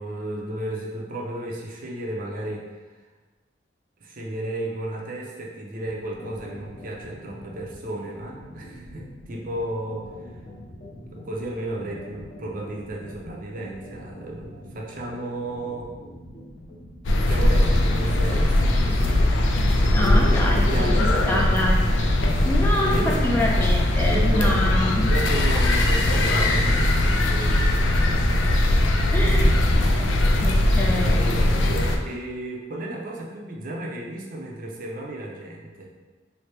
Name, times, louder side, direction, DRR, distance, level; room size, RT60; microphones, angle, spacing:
voice 1, 0.0-2.7 4.0-10.3 11.0-15.9 17.3-19.3 20.4-21.3 22.8-23.4 24.1-24.8 25.1-27.8 28.1-28.4 32.0-35.9, right 1 dB, 50° right, -1 dB, 0.6 m, -33 dB
sound 1, 5.8-20.6, left 1 dB, 40° left, 0.7 m, -44 dB
sound 2, 17.0-32.0, left 1 dB, 90° left, 0.4 m, -20 dB
voice 2, 19.9-21.8 22.1-25.1 29.1-29.5 29.8-30.1 30.4-31.2, left 1 dB, 10° left, -2 dB, 0.4 m, -26 dB
3.2 x 2.1 x 4.2 m, 1.3 s
head